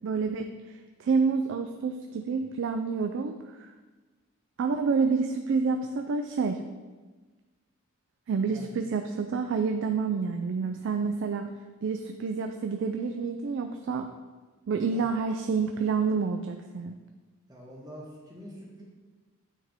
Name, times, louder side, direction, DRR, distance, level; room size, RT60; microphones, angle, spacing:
voice 1, 0.0-3.7 4.6-6.6 8.3-11.5 11.8-14.1 14.7-17.0, right 5 dB, 60° right, 6 dB, 0.3 m, -28 dB
voice 2, 17.5-18.8, equal, 20° right, -4 dB, 1.3 m, -45 dB
9.0 x 3.6 x 3.5 m, 1.3 s
head